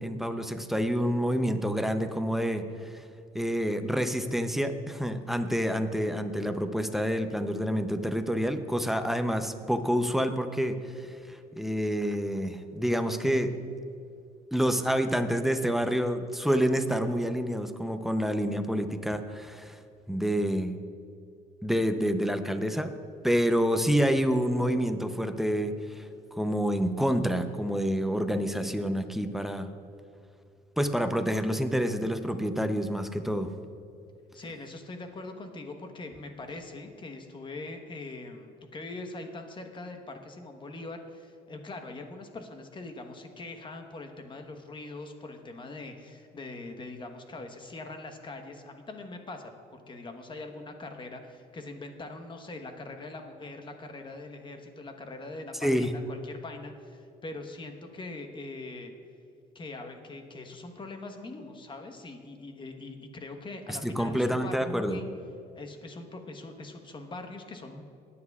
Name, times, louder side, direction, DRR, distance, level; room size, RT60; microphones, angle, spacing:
voice 1, 0.0-3.0 3.3-13.5 14.5-19.8 20.1-20.8 21.6-22.9 23.2-29.7 30.8-33.5 55.6-55.9 63.7-65.0, equal, ahead, 8 dB, 0.6 m, -28 dB
voice 2, 34.3-58.9 59.5-65.1 65.5-67.8, left 2 dB, 30° left, 5 dB, 1.1 m, -42 dB
19.0 x 9.6 x 2.4 m, 2.4 s
cardioid pair, 110°, 17 cm